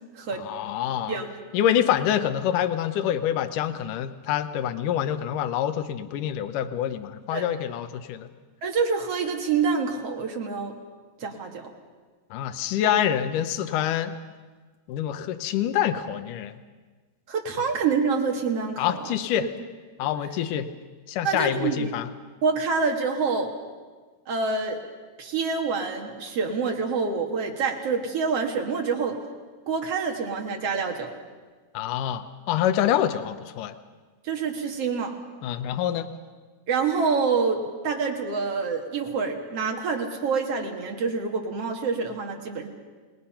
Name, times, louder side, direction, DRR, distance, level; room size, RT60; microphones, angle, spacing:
voice 1, 0.4-1.2 1.5-8.3 12.3-14.1 14.9-16.5 18.8-19.5 20.0-20.7 21.1-22.1 31.7-33.7 35.4-36.1, left 10 dB, 90° left, 9 dB, 1.8 m, -26 dB
voice 2, 8.6-10.7 11.2-11.7 17.3-19.1 19.4-19.5 21.2-21.9 22.4-23.5 24.3-24.8 25.2-29.2 29.7-31.1 34.2-35.1 36.7-42.7, right 5 dB, 50° right, 2 dB, 1.9 m, -26 dB
30.0 x 19.0 x 5.8 m, 1.4 s
omnidirectional pair, 4.8 m